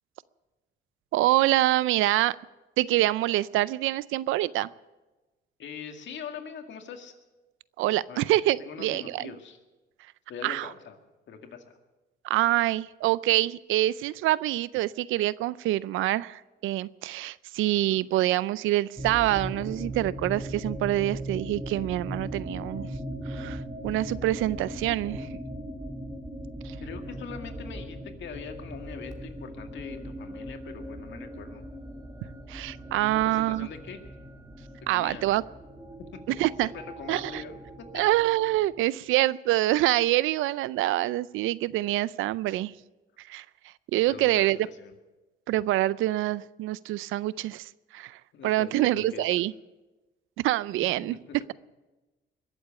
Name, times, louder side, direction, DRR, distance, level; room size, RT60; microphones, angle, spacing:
voice 1, 1.1-2.4 2.8-4.7 7.8-9.3 10.4-10.7 12.2-22.9 23.3-25.3 26.6-26.8 32.5-33.7 34.9-35.4 36.4-36.7 37.1-37.4 37.9-42.7 43.3-44.6 45.5-49.5 50.4-51.2, right 15 dB, 90° right, 20 dB, 0.5 m, -26 dB
voice 2, 5.6-7.1 8.1-8.3 8.6-9.6 10.3-11.0 11.3-11.8 17.6-18.0 26.8-31.6 33.1-34.0 34.9-35.2 36.6-38.0 44.1-44.9 48.3-49.3 51.0-51.4, left 6 dB, 65° left, 5 dB, 2.0 m, -42 dB
sound 1, 19.0-38.8, right 1 dB, 20° right, 2.3 m, -39 dB
22.0 x 7.9 x 8.1 m, 1.1 s
cardioid pair, 90°, 20 cm